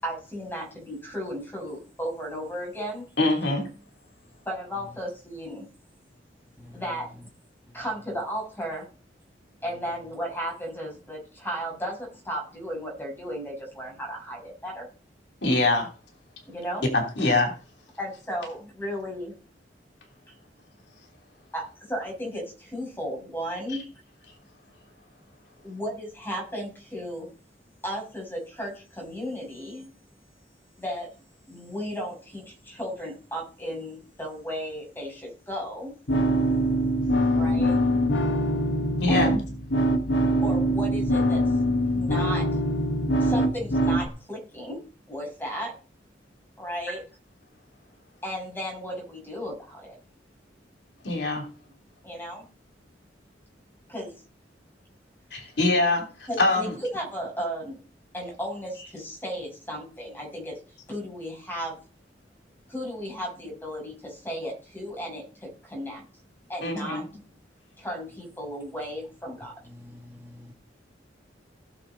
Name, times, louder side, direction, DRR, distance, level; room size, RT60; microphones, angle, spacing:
voice 1, 0.0-3.0 4.5-5.7 6.7-7.1 7.7-8.9 9.6-14.9 16.5-16.9 18.0-19.3 20.3-20.4 21.5-21.6 21.9-23.9 25.6-27.3 27.8-29.9 30.8-31.1 31.5-35.9 37.4-37.8 39.1-39.3 40.4-41.4 41.9-42.4 43.2-44.8 45.1-45.7 46.6-47.0 48.2-49.9 52.0-52.4 53.9-54.1 56.3-57.8 58.1-60.6 60.9-61.8 62.7-66.0 66.5-67.2 67.8-69.5, equal, 10° left, 7.1 m, -34 dB
voice 2, 3.2-3.7 15.4-15.9 16.9-17.5 23.7-23.8 39.0-39.4 51.0-51.4 55.3-56.7 66.6-67.0, left 2 dB, 70° left, 3.2 m, -24 dB
sound 1, 36.1-44.1, equal, 85° left, 1.6 m, -23 dB
voice 3, 69.7-70.5, left 1 dB, 15° right, 1.7 m, -47 dB
17.5 x 7.0 x 4.0 m
head